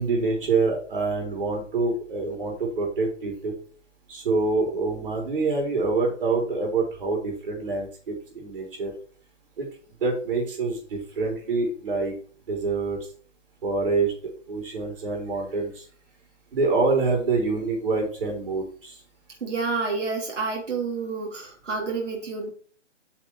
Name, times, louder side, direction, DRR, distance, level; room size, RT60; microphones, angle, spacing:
voice 1, 0.0-3.5 4.1-8.9 9.6-9.7 10.0-12.1 12.5-13.0 13.6-15.8 16.5-19.0, right 3 dB, 45° right, 0 dB, 3.9 m, -26 dB
voice 2, 19.4-22.5, right 4 dB, 70° right, -2 dB, 3.3 m, -29 dB
8.5 x 5.9 x 4.6 m, 0.43 s
hypercardioid pair, 155°, 37 cm